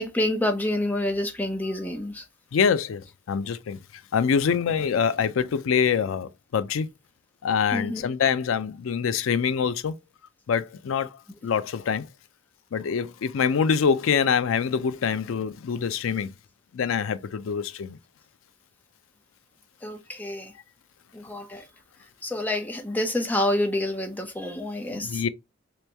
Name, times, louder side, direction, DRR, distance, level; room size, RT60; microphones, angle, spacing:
voice 1, 0.0-2.2 7.7-8.0 19.8-20.5 21.1-21.6 22.2-25.2, left 1 dB, 10° left, 0.6 m, -28 dB
voice 2, 2.5-6.9 7.4-9.9 10.5-12.1 12.7-16.3 16.7-18.0 24.9-25.3, left 6 dB, 90° left, 0.4 m, -25 dB
3.1 x 3.0 x 3.3 m
head